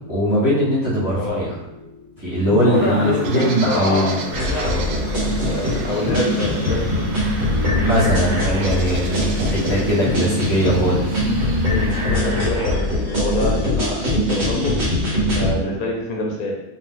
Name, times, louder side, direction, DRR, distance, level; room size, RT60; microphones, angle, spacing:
voice 1, 0.1-1.5 2.2-4.2 4.6-4.8 7.8-11.2, equal, 15° right, -10 dB, 1.3 m, -20 dB
voice 2, 1.1-1.5 2.6-5.0 5.5-7.1 11.7-14.7 15.3-16.6, left 2 dB, 70° left, -1 dB, 1.2 m, -26 dB
sound 1, 1.3-13.6, left 2 dB, 50° left, 0.7 m, -33 dB
sound 2, 2.7-12.2, right 4 dB, 80° right, 1.1 m, -36 dB
sound 3, 4.3-15.5, left 1 dB, 65° right, 2.1 m, -22 dB
3.8 x 2.9 x 3.8 m, 0.96 s
omnidirectional pair, 1.6 m